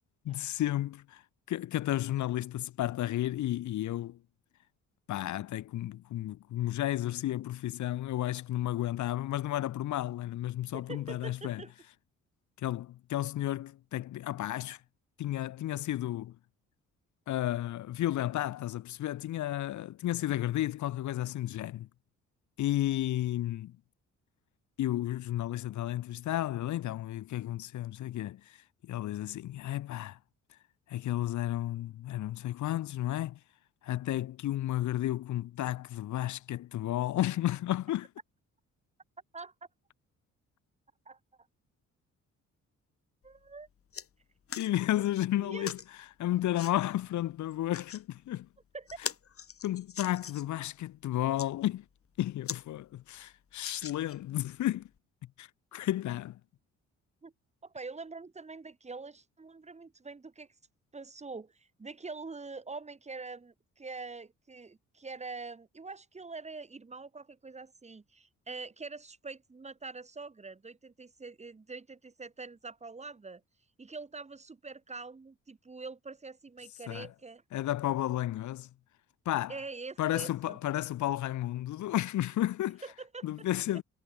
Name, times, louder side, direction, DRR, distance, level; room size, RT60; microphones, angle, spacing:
voice 1, 0.2-1.2 1.5-4.2 5.1-11.6 12.6-14.8 15.2-16.4 17.3-21.9 22.6-23.8 24.8-28.6 28.8-30.2 30.9-33.4 33.8-38.1 44.6-45.8 46.2-48.5 49.6-51.8 52.2-54.9 55.4-56.4 76.9-77.1 77.5-78.7 79.2-79.5 80.0-82.8 83.2-83.8, left 14 dB, 70° left, 1.1 m, -32 dB
voice 2, 10.7-11.7 39.3-39.5 41.0-41.2 43.2-43.7 45.4-45.7 48.7-48.9 57.2-57.3 57.6-60.5 60.9-73.4 73.8-77.4 79.5-80.6 82.8-83.3, right 4 dB, 20° right, 1.4 m, -44 dB
sound 1, 43.2-43.4 43.7-44.1 44.5-44.7 45.6-45.9 46.5-46.7 47.5-48.0 48.5-48.6 48.9-50.6 51.2-51.5 52.0-52.1 52.4-52.6 53.0-53.1 53.6-54.3 55.0-55.1, left 7 dB, 45° left, 2.7 m, -41 dB
cardioid pair, 90°, 30 cm